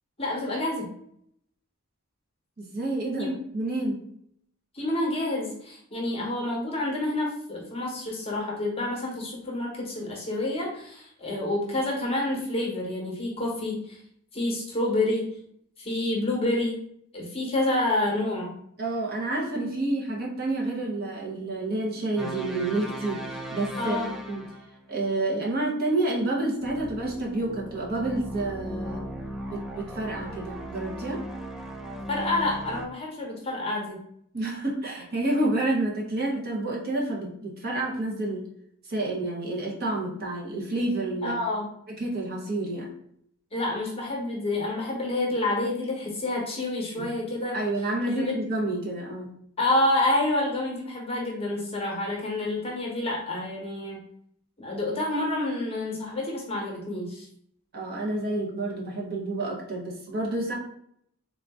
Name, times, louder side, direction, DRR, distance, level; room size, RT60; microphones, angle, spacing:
voice 1, 0.2-0.9 3.2-3.3 4.7-14.0 14.3-15.3 15.8-16.8 17.1-18.5 23.8-24.1 32.1-34.0 41.2-41.7 43.5-47.5 48.1-48.3 49.6-54.0 54.6-57.3, left 2 dB, 25° left, -1 dB, 1.0 m, -28 dB
voice 2, 2.6-4.0 18.8-24.0 24.3-24.4 24.9-29.0 29.5-31.2 34.3-38.4 38.9-41.4 41.9-42.9 47.0-47.1 47.5-49.3 57.7-60.5, right 2 dB, 45° right, -2 dB, 0.9 m, -29 dB
sound 1, 22.2-24.8 26.6-32.9, right 1 dB, ahead, 0.4 m, -37 dB
3.7 x 2.5 x 3.5 m, 0.70 s
head